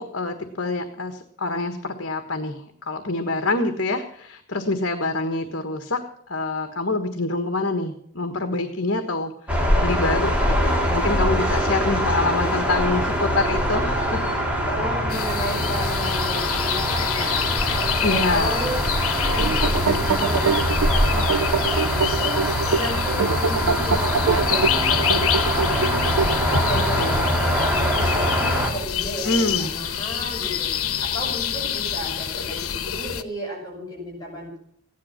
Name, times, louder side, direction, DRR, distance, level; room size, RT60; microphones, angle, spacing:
voice 1, 0.0-6.0 6.3-14.3 18.0-18.6 27.0-27.4 29.2-29.7, left 2 dB, 55° left, 7 dB, 1.5 m, -26 dB
sound 1, 9.5-28.7, equal, 5° right, 2.9 m, -23 dB
voice 2, 14.6-34.6, equal, 15° left, -3 dB, 6.5 m, -33 dB
sound 2, 15.1-33.2, left 9 dB, 80° left, 1.1 m, -27 dB
sound 3, 19.2-26.8, right 5 dB, 80° right, 0.5 m, -25 dB
15.5 x 11.0 x 5.8 m, 0.66 s
head